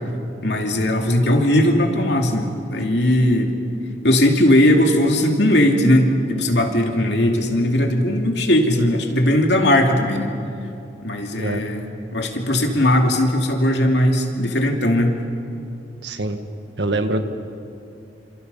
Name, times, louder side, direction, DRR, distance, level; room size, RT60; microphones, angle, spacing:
voice 1, 0.4-3.5 4.0-10.3 11.0-15.2, left 1 dB, 70° left, 2 dB, 2.8 m, -18 dB
voice 2, 16.0-16.4 16.8-17.2, right 2 dB, 80° right, 7 dB, 1.7 m, -24 dB
29.5 x 27.5 x 5.6 m, 2.6 s
head